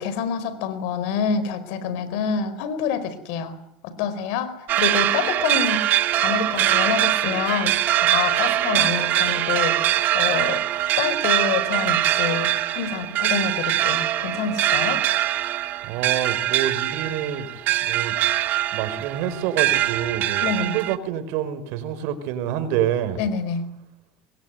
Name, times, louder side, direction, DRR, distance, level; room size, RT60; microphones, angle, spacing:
voice 1, 0.0-3.6 3.8-5.9 6.2-10.6 11.0-15.0 20.4-20.8 23.2-23.7, left 7 dB, 80° left, 14 dB, 4.5 m, -27 dB
sound 1, 4.7-21.0, right 13 dB, 60° right, 2.2 m, -23 dB
voice 2, 15.9-17.5 17.8-18.1 18.7-23.2, right 10 dB, 75° right, 11 dB, 5.0 m, -27 dB
26.5 x 22.0 x 9.4 m, 0.81 s
supercardioid pair, 100°, 4 cm